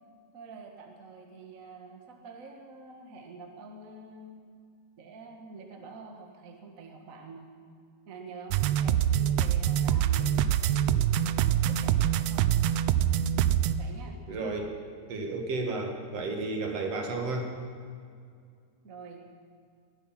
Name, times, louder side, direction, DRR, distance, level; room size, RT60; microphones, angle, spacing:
voice 1, 0.3-4.4 5.0-7.5 8.1-12.5 13.7-14.2 18.8-19.3, right 4 dB, 35° right, 2 dB, 1.4 m, -47 dB
sound 1, 8.5-13.8, right 10 dB, 90° right, 1.4 m, -25 dB
voice 2, 14.3-14.8 15.1-17.5, right 3 dB, 60° right, 2 dB, 2.6 m, -32 dB
20.5 x 12.0 x 5.8 m, 2.2 s
omnidirectional pair, 3.4 m